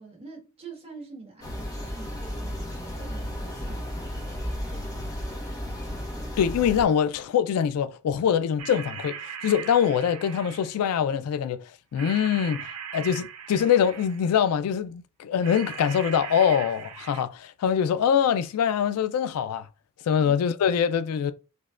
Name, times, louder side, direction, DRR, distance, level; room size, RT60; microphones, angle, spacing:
voice 1, 0.0-4.2 4.5-5.8, right 4 dB, 25° right, 1.3 m, -46 dB
sound 1, 1.4-6.8, equal, 15° left, 0.7 m, -34 dB
voice 2, 6.4-19.7 20.0-21.3, left 8 dB, 80° left, 0.3 m, -24 dB
sound 2, 8.6-10.9 12.0-14.4 15.4-17.2, right 7 dB, 75° right, 0.5 m, -39 dB
5.2 x 2.1 x 2.4 m
head